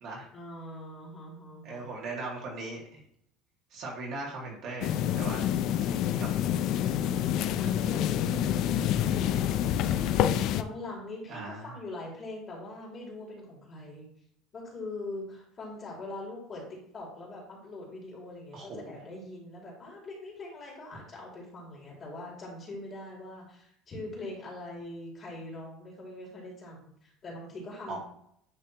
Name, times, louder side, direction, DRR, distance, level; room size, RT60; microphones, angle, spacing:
voice 1, 0.3-1.9 6.8-14.1 14.5-28.0, left 2 dB, 25° left, -3 dB, 2.3 m, -42 dB
voice 2, 1.6-3.0 3.7-5.4 6.2-6.3 8.4-8.5 11.3-11.7 18.5-18.9 27.9-28.0, right 3 dB, 45° right, -2 dB, 1.9 m, -39 dB
sound 1, 4.8-10.6, left 10 dB, 50° left, 0.3 m, -27 dB
9.9 x 3.3 x 2.9 m, 0.68 s
cardioid pair, 165°, 0 cm